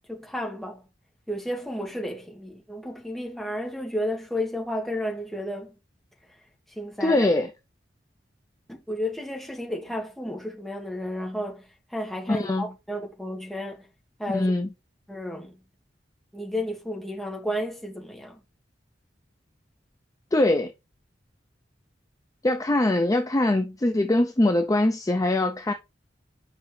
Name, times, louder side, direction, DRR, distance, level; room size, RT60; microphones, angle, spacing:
voice 1, 0.1-0.8 1.3-5.7 6.8-7.3 8.7-13.9 14.2-14.5 15.1-15.5 16.3-18.4, left 1 dB, ahead, 1.6 m, -32 dB
voice 2, 7.0-7.5 12.3-12.7 14.3-14.7 20.3-20.7 22.4-25.7, left 1 dB, 20° left, 0.5 m, -22 dB
6.8 x 5.4 x 3.2 m
head